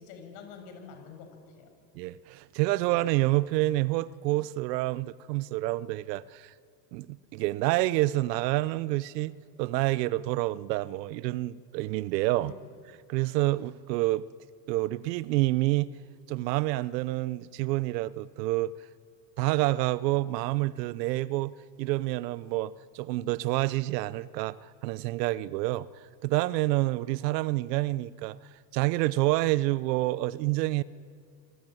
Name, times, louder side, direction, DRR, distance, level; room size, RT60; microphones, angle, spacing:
voice 1, 0.0-1.8 12.4-12.7, left 5 dB, 70° left, 6.9 m, -47 dB
voice 2, 1.9-6.5 6.9-12.5 13.1-14.3 14.7-15.9 16.3-18.7 19.4-24.6 24.8-25.9 26.2-28.4 28.7-30.8, right 18 dB, 75° right, 1.0 m, -28 dB
26.5 x 20.0 x 9.4 m
hypercardioid pair, 85°, 49 cm